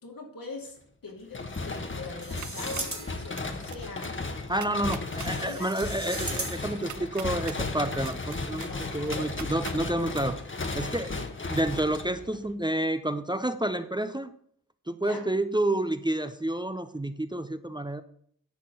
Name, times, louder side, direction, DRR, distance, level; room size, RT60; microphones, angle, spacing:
voice 1, 0.0-4.1 5.4-5.7 8.7-9.3 11.2-11.3 15.0-15.3, left 3 dB, 80° left, 1 dB, 2.6 m, -42 dB
sound 1, 1.3-12.5, left 3 dB, 35° left, 1.2 m, -35 dB
sound 2, 2.2-3.4 5.1-6.9, right 2 dB, 40° right, 1.9 m, -38 dB
sound 3, 2.2-3.0 3.4-3.8 4.0-4.1 4.5-5.3 5.8-7.6 8.0-9.8 10.1-10.2, right 9 dB, 60° right, 0.5 m, -43 dB
voice 2, 4.5-8.7 8.9-10.4 10.7-11.1 11.5-14.3 14.9-18.0, right 1 dB, 15° right, 10 dB, 0.5 m, -29 dB
10.5 x 4.3 x 7.7 m, 0.63 s
wide cardioid pair, 100°, 33 cm